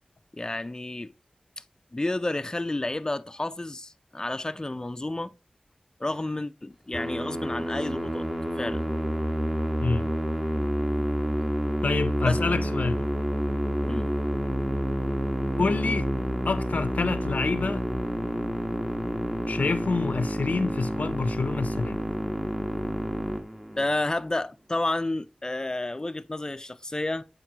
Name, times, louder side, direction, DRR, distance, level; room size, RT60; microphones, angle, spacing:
voice 1, 0.4-1.1 1.9-5.3 6.0-8.3 8.6-8.9 12.2-12.4 13.8-14.1 23.8-27.2, left 2 dB, 25° left, 0.4 m, -30 dB
Musical instrument, 6.9-24.1, equal, 15° right, 1.0 m, -29 dB
voice 2, 11.8-13.0 15.6-16.1 16.5-17.9 19.5-22.0, left 4 dB, 75° left, 0.5 m, -27 dB
7.5 x 5.1 x 2.8 m
wide cardioid pair, 50°, 3 cm